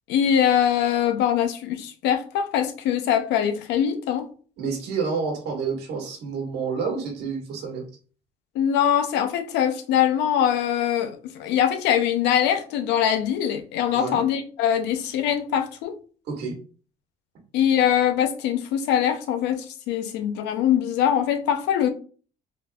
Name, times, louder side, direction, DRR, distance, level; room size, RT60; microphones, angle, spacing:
voice 1, 0.1-4.3 8.6-15.9 17.5-21.9, left 9 dB, 85° left, 0.6 m, -23 dB
voice 2, 4.6-7.8 13.9-14.2 16.3-16.5, right 5 dB, 80° right, 1.5 m, -29 dB
3.7 x 2.8 x 2.3 m
cardioid pair, 110°, 17 cm